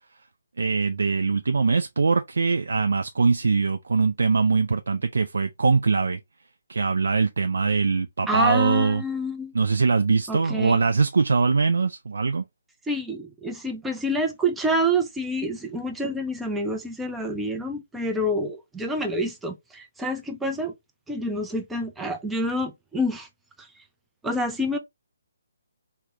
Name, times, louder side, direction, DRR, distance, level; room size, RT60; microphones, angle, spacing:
voice 1, 0.6-6.2 6.7-9.0 9.5-12.4, right 4 dB, 70° right, 0.3 m, -22 dB
voice 2, 8.3-9.5 10.3-10.8 12.9-20.7 21.1-23.3 23.6-23.7 24.2-24.8, equal, 5° right, 0.5 m, -27 dB
3.5 x 2.1 x 2.8 m
figure-of-eight pair, 145°, 0 cm